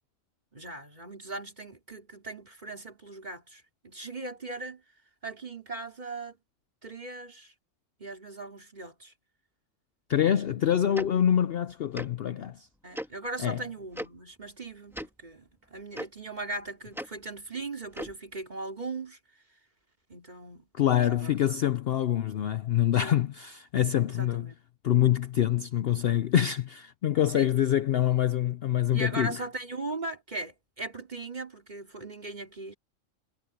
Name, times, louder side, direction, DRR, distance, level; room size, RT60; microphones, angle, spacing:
voice 1, 0.5-4.8 5.2-6.4 6.8-7.5 8.0-9.1 12.8-19.2 20.1-20.7 21.0-21.3 22.9-23.2 24.0-24.6 27.3-27.6 28.9-32.7, right 2 dB, 35° right, 3.1 m, -39 dB
voice 2, 10.1-12.7 13.4-13.6 20.7-24.5 24.8-29.5, left 10 dB, 60° left, 0.7 m, -25 dB
Tick-tock, 10.9-11.1 11.9-12.1 12.9-13.1 13.9-14.1 14.9-15.1 15.9-16.1 16.9-17.1 17.9-18.1, equal, ahead, 2.1 m, -36 dB
omnidirectional pair, 1.4 m